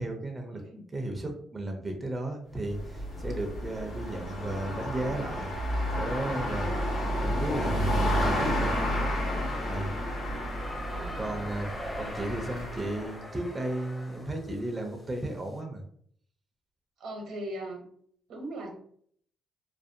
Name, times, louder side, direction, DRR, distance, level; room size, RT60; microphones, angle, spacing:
voice 1, 0.0-0.6 0.9-5.5 5.9-6.8 7.2-9.0 9.6-10.0 11.2-11.7 12.0-15.8, right 1 dB, 20° right, 3 dB, 0.5 m, -34 dB
voice 2, 0.5-0.9 10.9-11.3 17.0-17.8 18.3-18.7, right 1 dB, 75° right, 2 dB, 0.7 m, -39 dB
sound 1, 2.5-13.2, equal, 70° left, 0.8 m, -31 dB
sound 2, 8.0-15.6, left 1 dB, 20° left, 0.7 m, -44 dB
2.5 x 2.1 x 2.6 m, 0.62 s
cardioid pair, 90°, 0 cm